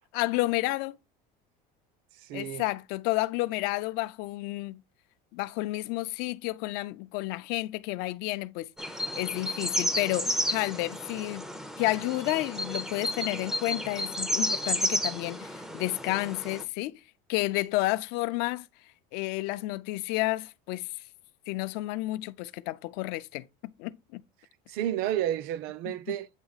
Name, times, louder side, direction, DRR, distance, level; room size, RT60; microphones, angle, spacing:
voice 1, 0.1-1.0 2.3-4.8 5.3-8.7 9.2-11.5 11.8-17.0 17.3-18.7 19.1-20.9 21.5-24.2 26.1-26.2, left 19 dB, 60° left, 0.5 m, -31 dB
voice 2, 2.1-2.7 24.7-26.3, right 12 dB, 55° right, 0.5 m, -31 dB
sound 1, 8.8-16.6, equal, ahead, 0.4 m, -32 dB
8.2 x 2.9 x 4.0 m
cardioid pair, 160°, 19 cm